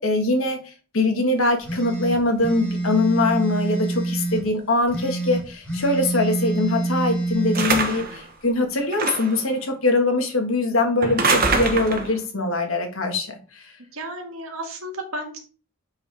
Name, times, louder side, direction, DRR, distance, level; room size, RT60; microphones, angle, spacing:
voice 1, 0.0-13.7, left 2 dB, 80° left, 5 dB, 1.7 m, -22 dB
sound 1, 1.6-4.4 4.9-7.7, right 2 dB, 5° left, 3.6 m, -26 dB
sound 2, 7.5-8.2 8.9-9.4 11.0-12.1, right 3 dB, 45° right, 1.2 m, -23 dB
voice 2, 7.8-8.2 13.9-15.4, right 1 dB, 85° right, 4 dB, 1.9 m, -34 dB
7.1 x 5.7 x 3.5 m, 0.36 s
head